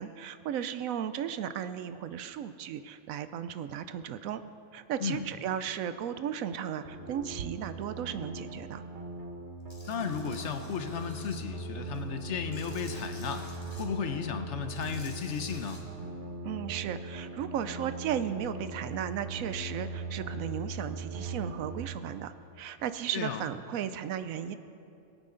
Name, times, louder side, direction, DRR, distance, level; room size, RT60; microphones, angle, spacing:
voice 1, 0.0-4.4 4.7-8.8 16.4-24.6, right 9 dB, 85° right, 12 dB, 1.0 m, -35 dB
sound 1, 6.8-21.8, right 2 dB, 55° right, 1.4 m, -40 dB
Tools, 9.7-11.4 11.9-13.8 14.6-15.8, left 1 dB, 20° left, 2.0 m, -51 dB
voice 2, 9.8-13.4 13.8-15.8 23.1-23.4, left 7 dB, 60° left, 8 dB, 1.1 m, -34 dB
22.0 x 9.1 x 3.8 m, 2.7 s
omnidirectional pair, 1.4 m